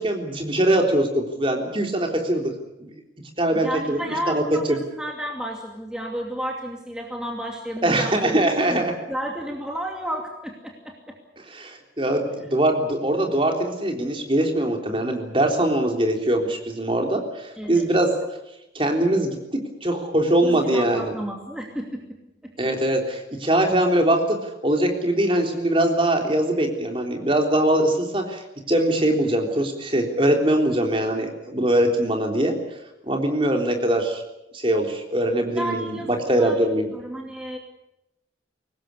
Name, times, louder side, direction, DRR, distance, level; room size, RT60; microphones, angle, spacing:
voice 1, 0.0-2.5 2.8-2.9 3.4-4.4 4.7-4.8 7.8-8.9 11.5-18.1 18.7-21.1 22.6-24.4 24.6-28.4 28.7-32.6 33.0-34.2 34.5-36.9, right 1 dB, 30° right, 3 dB, 3.6 m, -22 dB
voice 2, 3.5-8.4 8.7-11.2 17.6-17.9 20.4-22.2 22.4-22.7 35.5-37.6, equal, 5° right, 0 dB, 2.5 m, -32 dB
23.5 x 19.5 x 8.4 m, 0.89 s
head